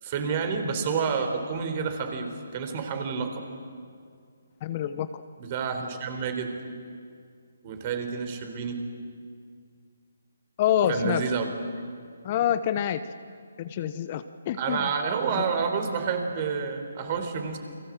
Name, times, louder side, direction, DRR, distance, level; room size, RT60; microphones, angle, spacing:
voice 1, 0.0-3.5 5.4-6.6 7.6-8.8 10.9-11.5 14.6-17.6, right 5 dB, 35° right, 6 dB, 4.1 m, -29 dB
voice 2, 4.6-5.1 5.8-5.9 10.6-11.2 12.2-13.0 13.6-14.8, left 10 dB, 35° left, 11 dB, 0.9 m, -26 dB
29.5 x 23.0 x 7.7 m, 2.2 s
figure-of-eight pair, 145°, 0 cm